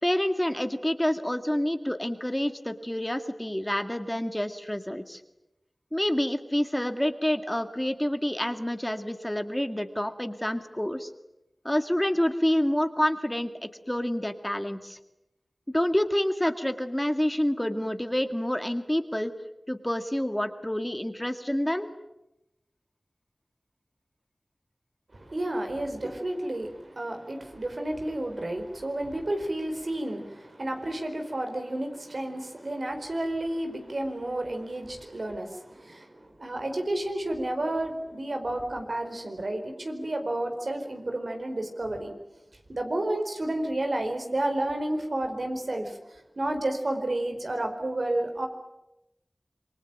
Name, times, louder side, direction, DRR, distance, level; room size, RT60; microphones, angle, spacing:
voice 1, 0.0-5.2 5.9-11.1 11.6-15.0 15.7-19.3 19.7-21.9, equal, 15° left, 8 dB, 2.0 m, -28 dB
voice 2, 25.1-42.1 42.7-46.0 46.4-48.5, right 1 dB, 65° right, 5 dB, 4.6 m, -31 dB
27.5 x 23.0 x 9.1 m, 0.91 s
wide cardioid pair, 45°, 0 cm